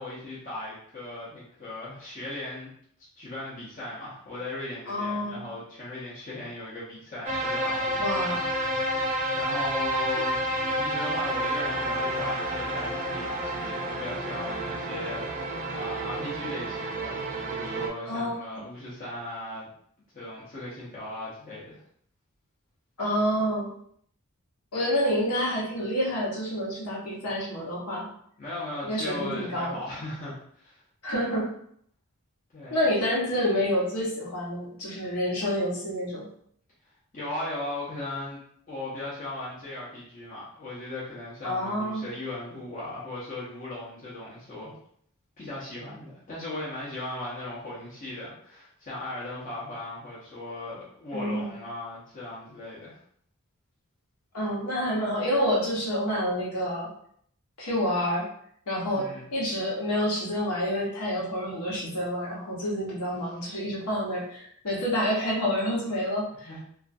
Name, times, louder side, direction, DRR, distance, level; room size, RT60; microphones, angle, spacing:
voice 1, 0.0-2.7 3.2-9.1 9.3-10.4 10.7-19.7 20.1-21.8 28.4-30.8 32.5-32.8 37.1-38.4 38.7-44.7 45.4-53.0 58.9-59.3 66.4-66.6, left 2 dB, 35° left, -8 dB, 0.6 m, -37 dB
voice 2, 4.9-5.4 8.0-8.3 18.1-18.3 23.0-23.7 24.7-28.1 28.8-29.8 31.0-31.5 32.7-36.2 41.4-42.0 51.1-51.5 54.3-56.9 57.6-58.2 58.7-66.5, equal, 85° left, -4 dB, 1.0 m, -28 dB
sound 1, 7.3-17.9, right 1 dB, 35° right, 0.4 m, -30 dB
2.4 x 2.3 x 2.5 m, 0.65 s
head